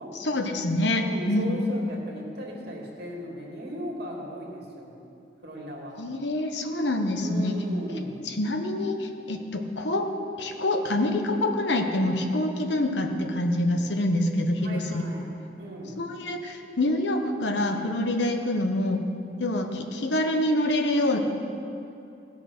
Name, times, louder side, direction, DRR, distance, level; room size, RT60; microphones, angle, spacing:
voice 1, 0.2-1.6 6.0-7.6 8.4-10.1 10.4-15.0 16.0-19.0 19.4-21.2, left 1 dB, 75° left, 5 dB, 1.1 m, -26 dB
voice 2, 1.0-5.0 5.4-6.0 7.2-8.2 14.6-16.0, equal, 60° right, -1 dB, 2.2 m, -37 dB
17.5 x 5.9 x 6.1 m, 2.7 s
head